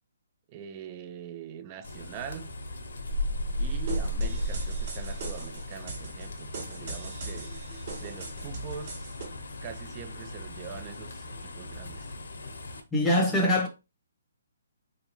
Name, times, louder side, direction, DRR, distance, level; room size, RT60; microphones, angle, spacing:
voice 1, 0.5-2.5 3.6-7.6 8.0-9.2 9.6-12.1, right 9 dB, 25° right, 0.4 m, -42 dB
sound 1, 1.8-12.8, left 1 dB, 80° left, 0.8 m, -36 dB
sound 2, 3.9-9.3, right 3 dB, 45° right, 1.2 m, -41 dB
voice 2, 12.9-13.7, left 1 dB, 5° left, 0.8 m, -23 dB
3.6 x 2.8 x 2.9 m
hypercardioid pair, 155°, 0 cm